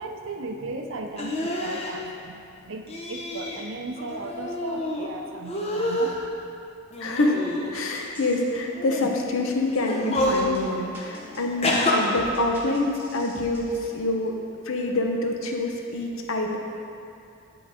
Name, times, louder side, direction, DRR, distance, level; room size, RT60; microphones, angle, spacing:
voice 1, 0.0-6.2, right 2 dB, 55° right, 3 dB, 0.6 m, -36 dB
sound 1, 1.2-1.9 2.9-3.6 4.0-5.1 5.4-6.2 6.9-8.0 8.7-9.1 9.8-10.5 11.6-11.9, left 1 dB, 25° left, 0.7 m, -28 dB
voice 2, 7.0-7.4 7.7-16.6, left 2 dB, 60° left, 2 dB, 0.8 m, -26 dB
sound 2, 7.7-13.9, equal, 10° right, 1.2 m, -46 dB
9.5 x 3.9 x 4.9 m, 2.5 s
head